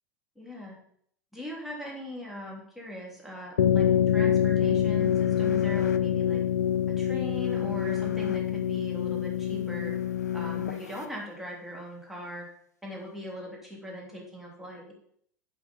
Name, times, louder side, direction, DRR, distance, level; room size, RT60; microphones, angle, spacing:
voice 1, 0.3-0.8 1.3-6.4 7.0-9.9 10.3-12.5 12.8-14.9, equal, 5° right, -3 dB, 3.1 m, -40 dB
sound 1, 3.6-11.0, left 9 dB, 75° left, 0.4 m, -26 dB
8.0 x 5.0 x 5.4 m, 0.65 s
figure-of-eight pair, 85°, 9 cm